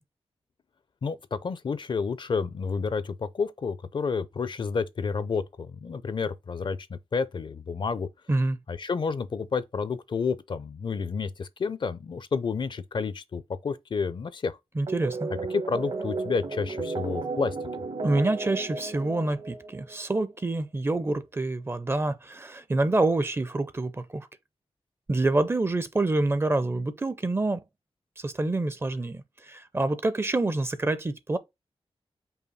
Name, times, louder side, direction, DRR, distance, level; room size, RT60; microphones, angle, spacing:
voice 1, 1.0-8.1 8.7-14.6 15.5-17.6, left 5 dB, 50° left, 0.5 m, -30 dB
voice 2, 14.8-15.3 18.0-24.3 25.1-27.6 28.2-31.4, right 2 dB, 25° right, 0.5 m, -27 dB
sound 1, 14.9-20.0, right 3 dB, 60° right, 1.1 m, -34 dB
5.5 x 2.3 x 4.1 m
wide cardioid pair, 115°, 10 cm